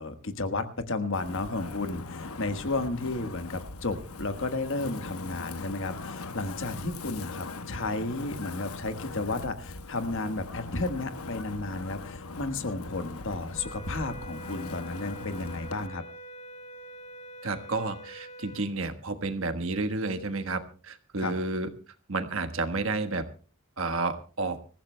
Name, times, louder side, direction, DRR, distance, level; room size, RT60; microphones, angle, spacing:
voice 1, 0.0-16.0 21.2-21.3, left 2 dB, 60° left, 9 dB, 1.4 m, -33 dB
Wind, 1.1-15.9, left 3 dB, 85° left, 1.0 m, -40 dB
sound 1, 13.5-18.7, right 1 dB, 30° left, 1.5 m, -45 dB
voice 2, 17.4-21.7 22.1-23.2 23.8-24.6, right 3 dB, 65° right, 9 dB, 1.3 m, -31 dB
25.5 x 15.0 x 2.2 m, 0.37 s
head